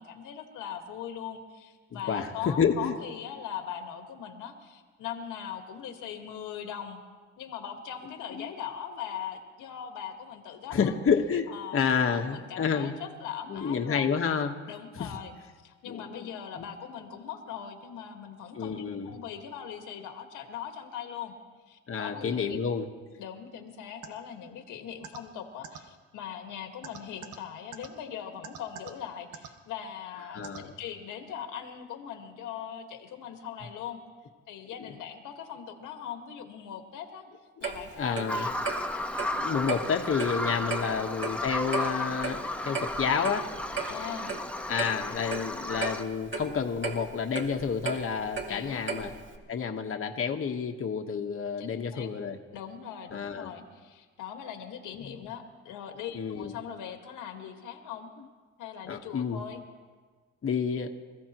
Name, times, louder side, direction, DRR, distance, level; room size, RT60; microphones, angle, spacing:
voice 1, 0.0-7.0 7.4-11.0 11.5-14.1 14.7-15.3 15.6-21.3 21.7-22.6 23.2-34.0 34.5-37.3 37.6-38.6 40.6-41.0 43.9-44.4 48.5-48.9 51.6-52.1 52.5-58.1 58.6-59.6, left 8 dB, 90° left, 4 dB, 1.8 m, -40 dB
voice 2, 2.1-2.9 8.3-8.5 10.7-12.9 13.5-14.5 15.0-15.1 15.9-16.3 16.6-16.7 18.5-19.1 21.9-22.9 30.3-30.7 37.6-37.7 38.0-38.5 39.3-43.5 44.7-49.1 49.5-52.4 53.1-53.5 55.0-55.2 56.1-56.5 58.9-59.4 60.4-60.9, left 6 dB, 45° left, 3 dB, 1.3 m, -29 dB
sound 1, 24.0-24.1 25.0-25.2 25.6-25.8 26.8-27.4 27.7-27.9 28.4-28.9 29.3-29.5 30.4-30.6, right 8 dB, 85° right, 1.4 m, -41 dB
Clock, 37.6-49.4, right 4 dB, 40° right, 2.2 m, -37 dB
Bird vocalization bird call bird song, 38.3-46.0, left 1 dB, 5° left, 1.2 m, -34 dB
27.0 x 15.0 x 3.0 m, 1.5 s
cardioid pair, 90°, 30 cm